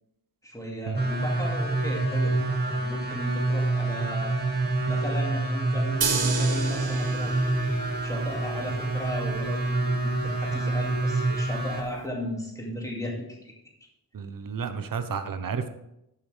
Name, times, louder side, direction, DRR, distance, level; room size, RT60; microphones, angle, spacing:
voice 1, 0.4-2.4 2.7-4.4 4.9-7.4 8.0-13.5, equal, 10° left, -1 dB, 2.4 m, -36 dB
sound 1, 0.9-11.8, right 2 dB, 25° right, 2.1 m, -27 dB
sound 2, 6.0-12.0, right 5 dB, 85° right, 1.4 m, -34 dB
voice 2, 14.1-15.7, right 6 dB, 60° right, 10 dB, 1.0 m, -31 dB
11.5 x 9.0 x 3.4 m, 0.84 s
wide cardioid pair, 135°, 37 cm